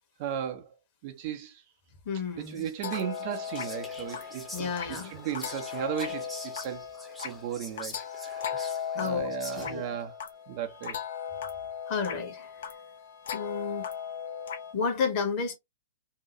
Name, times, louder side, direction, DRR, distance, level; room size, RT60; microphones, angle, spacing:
voice 1, 0.2-0.7 1.0-1.5 2.4-6.8 7.2-8.0 8.2-8.7 8.9-10.1 10.5-11.0, right 9 dB, 45° right, 0.6 m, -36 dB
voice 2, 2.1-2.7 4.5-5.1 9.0-9.9 11.9-12.5 13.3-13.9 14.7-15.6, left 5 dB, 40° left, 1.2 m, -31 dB
Whispering, 2.4-10.0, left 1 dB, 5° left, 0.8 m, -46 dB
sound 1, 2.8-14.7, left 7 dB, 60° left, 0.7 m, -37 dB
2.8 x 2.2 x 2.8 m
figure-of-eight pair, 110°, 0 cm